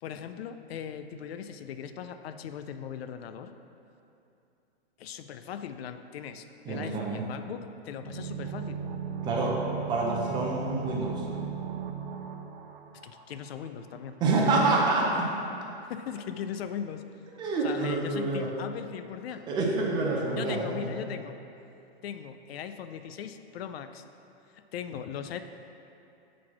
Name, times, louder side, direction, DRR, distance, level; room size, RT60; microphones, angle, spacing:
voice 1, 0.0-3.5 5.0-8.8 13.0-14.2 15.8-17.1 17.6-19.4 20.4-21.4 22.0-24.0 24.5-25.4, left 8 dB, 70° left, 9 dB, 0.5 m, -39 dB
voice 2, 6.7-7.2 9.2-9.6 9.9-11.3 14.2-15.3 17.3-18.5 19.5-20.9, right 3 dB, 15° right, -3 dB, 0.5 m, -27 dB
sound 1, 8.0-13.7 13.9-14.0, right 7 dB, 60° right, 0.6 m, -37 dB
7.3 x 4.1 x 4.6 m, 2.8 s
hypercardioid pair, 155°, 31 cm